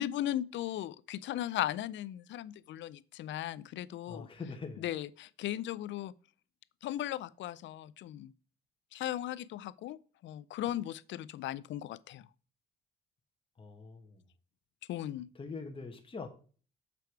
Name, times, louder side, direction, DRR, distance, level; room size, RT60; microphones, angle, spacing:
voice 1, 0.0-4.3 4.8-6.1 6.8-8.3 8.9-12.3 14.9-15.3, left 12 dB, 70° left, 0.4 m, -37 dB
voice 2, 4.1-4.8 13.6-14.2 15.3-16.3, left 4 dB, 25° left, 1.2 m, -43 dB
6.8 x 4.6 x 4.7 m
cardioid pair, 90°, 20 cm